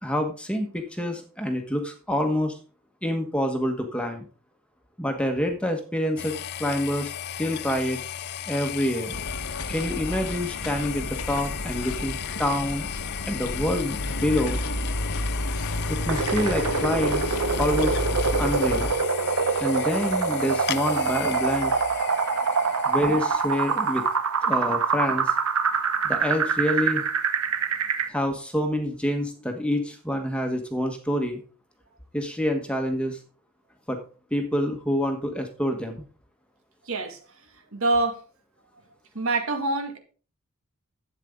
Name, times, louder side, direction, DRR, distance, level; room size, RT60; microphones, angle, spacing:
voice 1, 0.0-2.6 3.0-4.2 5.0-6.3 6.6-8.0 8.5-9.1 9.7-12.9 13.2-14.6 15.9-17.2 17.6-18.0 18.4-18.9 19.6-21.7 22.8-24.0 24.4-25.3 26.0-27.1 28.1-31.4 32.1-33.2 33.9-34.0 34.3-36.0, equal, 5° left, 4 dB, 1.3 m, -27 dB
sound 1, 6.2-24.2, left 10 dB, 50° left, 0.5 m, -36 dB
sound 2, 9.1-18.9, left 1 dB, 85° left, 1.3 m, -31 dB
sound 3, 16.1-28.1, right 5 dB, 85° right, 1.0 m, -25 dB
voice 2, 36.8-37.2 37.7-38.2 39.1-40.0, right 2 dB, 70° right, 5 dB, 2.1 m, -25 dB
12.0 x 8.3 x 3.7 m, 0.37 s
head